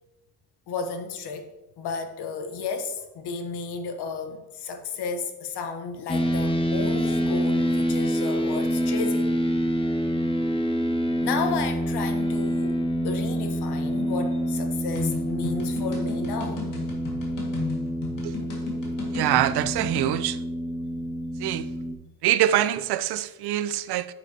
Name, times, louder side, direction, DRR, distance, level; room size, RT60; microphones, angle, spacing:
voice 1, 0.7-9.3 11.2-16.7, left 5 dB, 85° left, 1.1 m, -33 dB
sound 1, 6.1-21.9, equal, 15° left, 0.6 m, -27 dB
sound 2, 14.9-20.1, left 4 dB, 50° left, 1.9 m, -35 dB
voice 2, 19.1-20.4 21.4-21.7 22.2-24.1, right 12 dB, 80° right, 0.5 m, -24 dB
9.3 x 7.3 x 2.8 m
cardioid pair, 175°, 39 cm